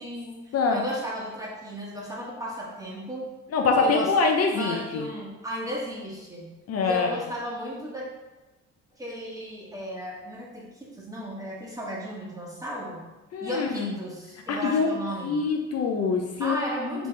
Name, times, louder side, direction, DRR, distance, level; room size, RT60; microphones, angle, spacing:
voice 1, 0.0-3.3 3.8-4.1 4.5-6.5 6.8-8.1 9.0-13.0 13.4-15.4 16.4-17.1, equal, 10° right, -4 dB, 1.2 m, -35 dB
voice 2, 3.5-5.0 6.7-7.2 13.3-13.9 14.5-14.9 15.2-16.6, left 4 dB, 55° left, 3 dB, 0.5 m, -24 dB
4.0 x 3.3 x 3.3 m, 1.1 s
cardioid pair, 90°, 30 cm